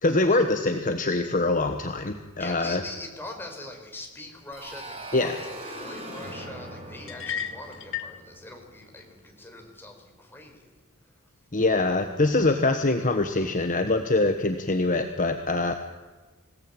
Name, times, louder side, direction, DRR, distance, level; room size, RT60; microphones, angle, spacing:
voice 1, 0.0-2.8 5.1-5.3 11.5-15.8, left 2 dB, 35° left, 6 dB, 1.3 m, -24 dB
voice 2, 2.4-10.7 11.0-11.1, left 2 dB, 10° left, 1 dB, 4.7 m, -42 dB
sound 1, 4.5-9.2, right 1 dB, 25° right, 6.3 m, -41 dB
sound 2, 7.1-8.2, left 8 dB, 60° left, 1.6 m, -33 dB
26.5 x 17.5 x 8.9 m, 1.3 s
head